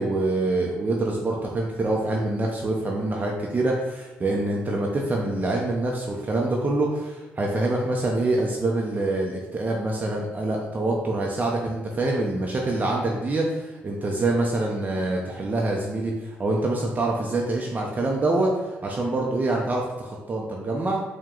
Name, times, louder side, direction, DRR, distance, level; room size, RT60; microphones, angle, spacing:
voice 1, 0.0-21.0, right 2 dB, 35° right, -1 dB, 0.6 m, -25 dB
4.6 x 2.2 x 3.7 m, 1.1 s
supercardioid pair, 65°, 5 cm